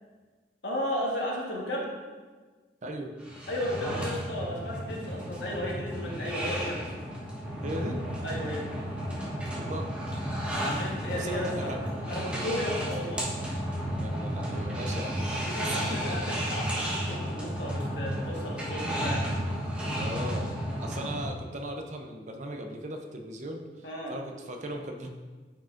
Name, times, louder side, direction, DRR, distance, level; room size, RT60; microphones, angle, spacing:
voice 1, 0.6-1.9 3.5-6.9 8.2-8.7 10.6-11.7 12.1-13.3 15.5-19.2 23.8-24.2, left 1 dB, 85° left, -2 dB, 1.5 m, -34 dB
voice 2, 2.8-3.1 7.6-8.0 9.5-9.9 11.1-11.8 14.0-16.4 20.0-25.1, right 1 dB, 45° right, 3 dB, 0.6 m, -38 dB
sound 1, 3.2-21.3, equal, 5° right, 1.2 m, -33 dB
9.0 x 5.0 x 2.6 m, 1.4 s
head